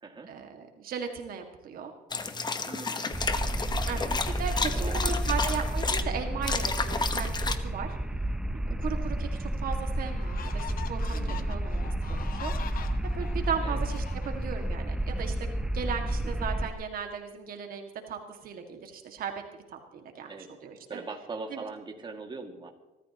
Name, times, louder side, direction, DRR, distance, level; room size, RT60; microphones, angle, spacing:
voice 1, 0.3-1.9 3.0-3.2 3.9-4.1 4.4-8.0 8.8-12.9 13.2-19.3 19.7-20.3 20.6-21.0 21.5-21.6, right 7 dB, 60° right, 4 dB, 1.9 m, -37 dB
sound 1, 2.1-6.0 6.4-7.6, left 4 dB, 25° left, 1.2 m, -31 dB
voice 2, 2.6-3.1 3.9-4.4 4.8-5.5 8.5-8.8 11.1-11.6 13.6-13.8 16.4-16.5 20.3-20.5 20.9-22.7, right 3 dB, 25° right, 3 dB, 2.1 m, -42 dB
sound 2, 3.1-16.7, right 1 dB, 5° right, 0.6 m, -31 dB
sound 3, 9.1-9.2 9.7-14.7, left 8 dB, 60° left, 1.3 m, -44 dB
24.0 x 13.5 x 3.0 m, 1.1 s
cardioid pair, 110°, 17 cm